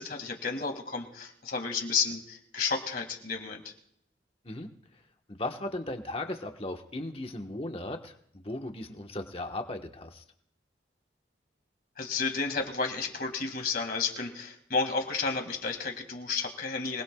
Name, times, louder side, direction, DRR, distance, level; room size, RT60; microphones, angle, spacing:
voice 1, 0.0-3.7 12.0-17.0, left 4 dB, 55° left, 4 dB, 2.3 m, -32 dB
voice 2, 5.3-10.2, left 1 dB, 30° left, 4 dB, 1.3 m, -37 dB
25.5 x 20.0 x 2.4 m, 0.69 s
head